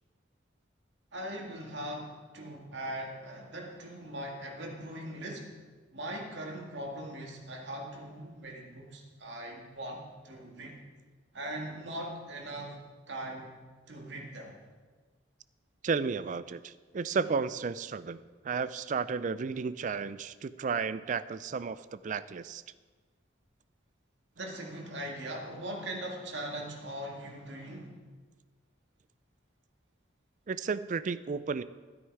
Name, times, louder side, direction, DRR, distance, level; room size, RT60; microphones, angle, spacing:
voice 1, 1.1-5.5 5.9-10.8 11.3-12.8 13.1-13.5 13.9-14.6 17.1-17.2 24.4-27.9, right 1 dB, 70° right, 0 dB, 2.0 m, -40 dB
voice 2, 15.8-18.2 18.4-22.6 30.5-31.6, right 5 dB, 40° right, 15 dB, 0.4 m, -33 dB
12.5 x 9.6 x 4.7 m, 1.4 s
head